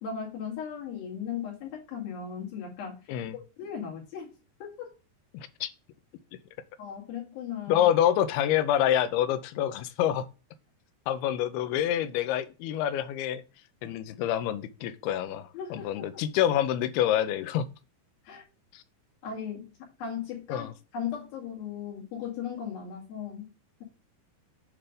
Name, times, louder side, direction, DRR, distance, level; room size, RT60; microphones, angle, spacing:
voice 1, 0.0-3.0 3.6-4.3 4.6-4.9 6.8-7.9 15.5-16.2 18.3-18.4 19.2-19.7 20.0-23.5, left 7 dB, 65° left, 4.0 m, -37 dB
voice 2, 5.3-5.7 7.7-10.3 11.1-13.4 13.8-17.7 18.7-18.8 20.5-20.7, left 11 dB, 85° left, 2.5 m, -27 dB
8.8 x 3.3 x 5.1 m
omnidirectional pair, 4.6 m